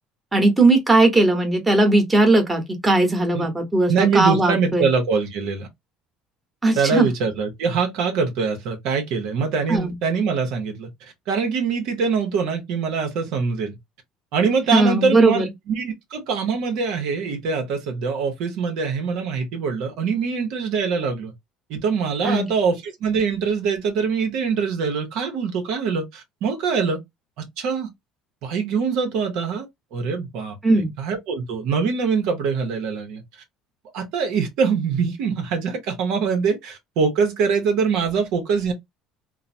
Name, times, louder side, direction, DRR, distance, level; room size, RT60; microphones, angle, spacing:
voice 1, 0.3-4.8 6.6-7.1 9.7-9.9 14.7-15.5 22.2-22.5 30.6-30.9, right 2 dB, 15° right, 1.1 m, -18 dB
voice 2, 3.9-5.7 6.8-13.8 14.3-21.3 21.7-27.0 27.6-27.9 28.4-29.7 29.9-30.6 31.0-33.2 33.9-38.7, right 5 dB, 70° right, 0.8 m, -23 dB
2.9 x 2.0 x 2.5 m
supercardioid pair, 95°, 0 cm